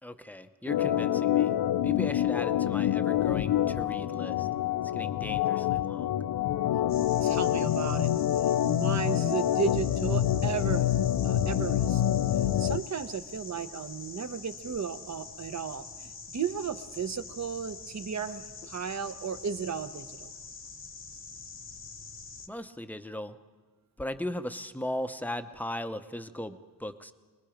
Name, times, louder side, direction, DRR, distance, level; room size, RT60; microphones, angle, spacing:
voice 1, 0.0-4.5 4.9-6.2 22.5-23.4 24.0-27.1, left 1 dB, 5° left, 9 dB, 0.7 m, -38 dB
Organ, 0.7-12.8, left 12 dB, 75° left, 0.5 m, -27 dB
sound 1, 6.9-22.5, left 4 dB, 35° left, 1.0 m, -45 dB
voice 2, 7.2-8.1 8.6-10.9 11.2-12.0 12.6-20.3, right 7 dB, 50° right, 10 dB, 0.9 m, -34 dB
25.5 x 20.0 x 5.1 m, 1.4 s
wide cardioid pair, 145°, 36 cm